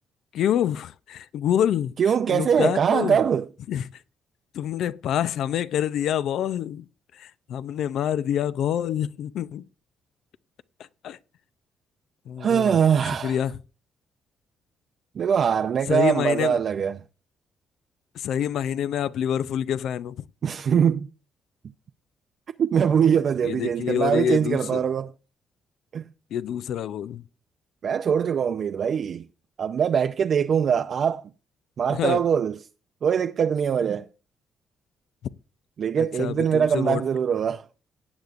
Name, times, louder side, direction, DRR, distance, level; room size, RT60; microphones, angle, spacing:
voice 1, 0.3-1.9 2.3-3.2 3.7-3.8 4.5-6.8 7.2-9.6 11.0-11.2 12.3-12.8 13.2-13.5 15.9-16.6 18.2-20.1 23.4-24.8 26.3-27.2 31.9-32.2 36.0-37.0, left 10 dB, 75° left, 0.4 m, -26 dB
voice 2, 2.0-3.5 12.4-13.4 15.1-17.0 20.4-21.1 22.6-25.1 25.9-26.1 27.8-29.3 29.6-31.3 31.8-32.7 33.0-34.1 35.8-37.7, right 7 dB, 55° right, 0.4 m, -22 dB
17.0 x 8.1 x 2.5 m
cardioid pair, 90°, 0 cm